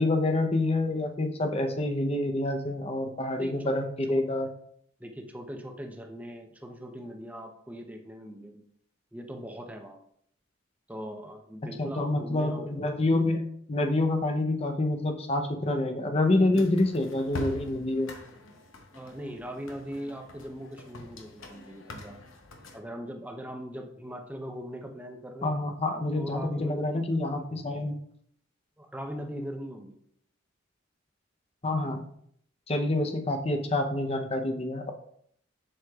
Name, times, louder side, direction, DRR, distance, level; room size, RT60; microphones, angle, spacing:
voice 1, 0.0-4.5 11.8-18.1 25.4-28.0 31.6-32.0 32.7-34.9, left 2 dB, 30° left, 5 dB, 0.7 m, -27 dB
voice 2, 3.4-4.3 5.0-8.6 9.1-10.0 10.9-12.8 16.5-16.7 18.9-22.2 22.7-25.6 26.2-27.0 27.4-27.5 28.8-30.0, equal, 10° right, 3 dB, 0.7 m, -40 dB
sound 1, 16.5-22.8, left 2 dB, 85° left, 0.9 m, -43 dB
7.7 x 6.3 x 2.4 m, 0.68 s
head